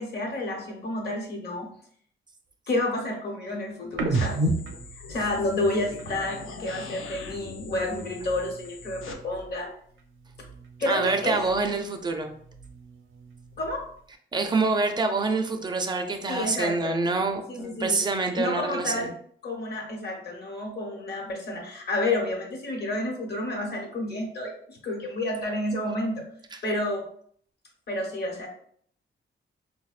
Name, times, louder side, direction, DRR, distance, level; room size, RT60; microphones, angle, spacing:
voice 1, 0.0-1.7 2.7-4.4 5.1-9.7 10.8-11.4 13.6-13.8 16.3-17.0 17.5-18.0 18.3-19.1 19.4-26.2 26.6-27.0 27.9-28.5, left 1 dB, 50° left, 1 dB, 1.0 m, -30 dB
sound 1, 3.9-7.5 7.8-9.7 9.9-11.8 12.2-14.0, right 2 dB, 75° right, 0.5 m, -35 dB
sound 2, 4.1-9.1, left 4 dB, 75° left, 0.6 m, -41 dB
voice 2, 10.9-12.3 14.3-19.1 26.5-26.6, right 3 dB, 20° right, 5 dB, 0.4 m, -26 dB
5.0 x 2.1 x 2.4 m, 0.62 s
wide cardioid pair, 145°, 21 cm